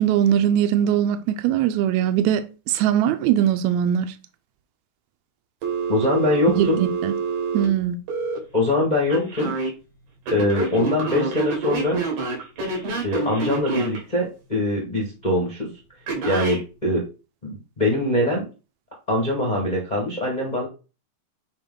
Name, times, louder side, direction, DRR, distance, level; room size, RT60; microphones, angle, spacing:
voice 1, 0.0-4.1 6.5-7.1 7.5-8.0, right 10 dB, 85° right, 1.6 m, -21 dB
Telephone, 5.6-8.4 9.1-9.7 10.3-14.0 16.1-16.6, right 4 dB, 65° right, 3.3 m, -27 dB
voice 2, 5.9-6.8 8.5-9.5 10.3-12.0 13.0-15.7 16.2-17.0 17.4-18.5 19.1-20.7, left 1 dB, 60° left, 0.4 m, -23 dB
8.4 x 3.0 x 3.8 m
omnidirectional pair, 4.0 m